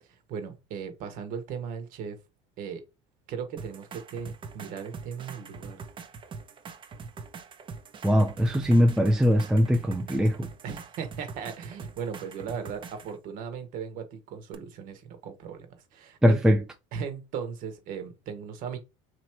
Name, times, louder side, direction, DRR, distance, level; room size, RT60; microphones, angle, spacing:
voice 1, 0.0-2.2 2.6-2.8 3.3-5.8 10.6-16.4 16.9-18.8, right 7 dB, 60° right, 1.3 m, -37 dB
sound 1, 3.6-13.2 14.5-14.6, right 5 dB, 30° right, 0.7 m, -43 dB
voice 2, 8.0-10.5 16.2-16.6, equal, 5° right, 0.4 m, -21 dB
3.0 x 2.8 x 4.4 m
supercardioid pair, 110°, 16 cm